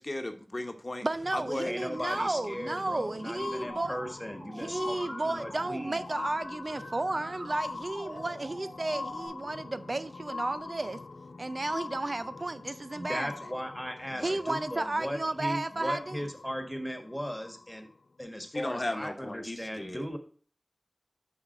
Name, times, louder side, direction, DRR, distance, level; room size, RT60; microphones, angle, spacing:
voice 1, 0.0-1.1 1.3-1.7 14.2-14.4 18.5-20.0, left 1 dB, 45° left, 1.0 m, -35 dB
voice 2, 1.0-4.0 4.6-11.0 11.4-13.3 14.2-16.3, right 2 dB, 55° right, 0.4 m, -33 dB
sound 1, 1.1-17.9 18.7-18.8, left 3 dB, 80° left, 0.4 m, -43 dB
voice 3, 1.7-6.0 12.9-17.9 18.2-20.2, equal, 5° left, 1.5 m, -37 dB
Musical instrument, 3.7-9.3, right 1 dB, 80° right, 2.7 m, -46 dB
6.1 x 5.4 x 4.2 m
wide cardioid pair, 45°, 0 cm